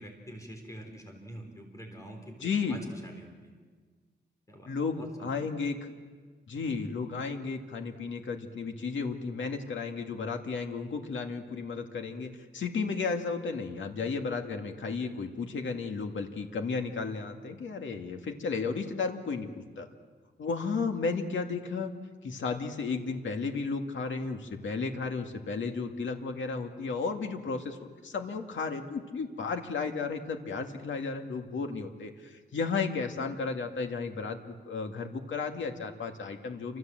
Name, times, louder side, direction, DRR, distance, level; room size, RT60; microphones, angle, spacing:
voice 1, 0.0-3.5 4.5-4.7 5.0-5.4, right 1 dB, 15° left, 3 dB, 3.7 m, -46 dB
voice 2, 2.4-2.8 4.7-5.8 6.5-19.9 20.4-21.9 22.2-36.8, left 4 dB, 85° left, 4 dB, 2.2 m, -33 dB
28.5 x 26.0 x 7.7 m, 1.5 s
wide cardioid pair, 170°, 19 cm